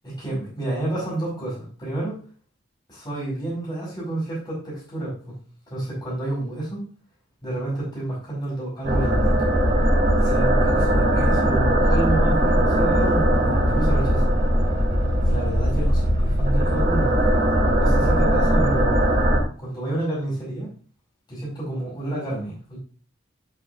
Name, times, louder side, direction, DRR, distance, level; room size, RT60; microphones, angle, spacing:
voice 1, 0.0-2.2 2.9-5.4 5.7-6.9 7.4-9.5 10.2-14.3 15.2-17.1 17.7-19.0 19.6-20.7 21.3-22.8, right 1 dB, 20° left, -7 dB, 4.5 m, -29 dB
sound 1, 8.8-19.4, equal, 45° right, 2.8 m, -19 dB
11.5 x 5.7 x 2.6 m, 0.39 s
head